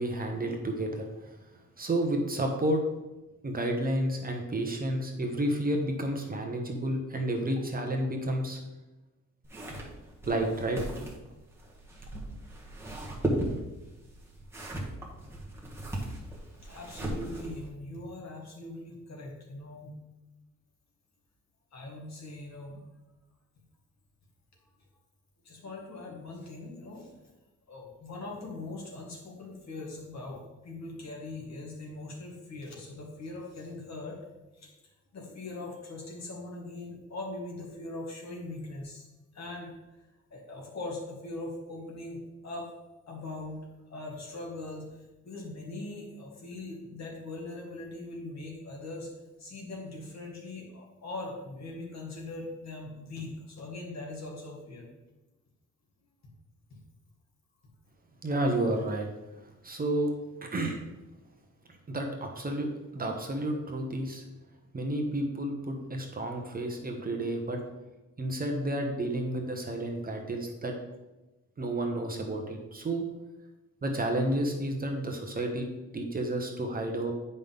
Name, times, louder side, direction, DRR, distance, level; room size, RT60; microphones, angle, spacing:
voice 1, 0.0-1.4 1.8-2.8 3.4-8.6 10.2-10.8 58.2-59.1 59.6-60.1 60.4-60.8 61.9-64.2 64.7-67.6 68.2-70.7 71.6-73.0 73.8-75.7 75.9-77.1, right 1 dB, 30° right, 2 dB, 1.0 m, -31 dB
sound 1, 9.4-17.7, right 1 dB, 10° right, 1.5 m, -37 dB
voice 2, 16.6-19.9 21.7-22.8 25.4-27.1 27.7-34.2 34.6-34.7 35.1-39.1 39.3-40.0 40.3-42.7 43.1-43.6 43.9-54.9 56.7-56.8, left 2 dB, 55° left, -2 dB, 2.3 m, -41 dB
9.5 x 5.4 x 3.6 m, 1.1 s
wide cardioid pair, 145°, 32 cm